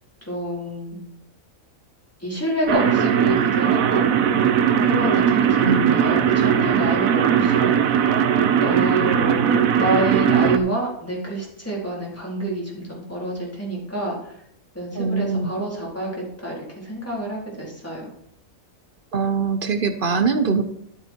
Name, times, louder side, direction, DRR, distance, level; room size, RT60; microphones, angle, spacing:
voice 1, 0.2-1.0 2.2-4.1 4.8-8.1 8.6-14.4 14.7-18.1, right 1 dB, 10° left, -4 dB, 3.9 m, -28 dB
sound 1, 2.7-10.6, right 8 dB, 85° right, 1.2 m, -19 dB
voice 2, 5.6-6.0 14.9-15.5 19.1-20.6, right 5 dB, 50° right, 9 dB, 0.8 m, -22 dB
12.5 x 7.7 x 4.5 m, 0.72 s
omnidirectional pair, 1.4 m